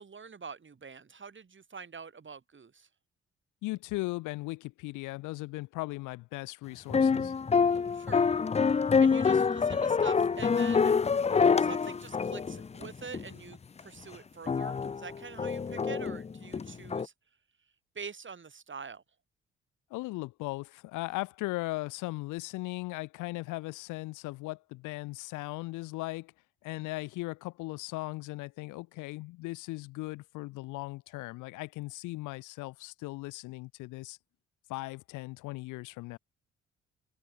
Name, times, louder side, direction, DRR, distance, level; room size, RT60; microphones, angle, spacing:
voice 1, 0.0-2.9 7.9-8.3 9.0-11.0 11.3-17.1 18.0-19.0, right 5 dB, 35° right, 5.7 m, -45 dB
voice 2, 3.6-7.3 19.9-26.3 26.6-34.2 34.7-36.2, left 21 dB, 65° left, 1.7 m, -38 dB
sound 1, 6.9-13.3 13.8-13.9 14.5-17.1, left 5 dB, 20° left, 0.6 m, -26 dB
figure-of-eight pair, 45°, 33 cm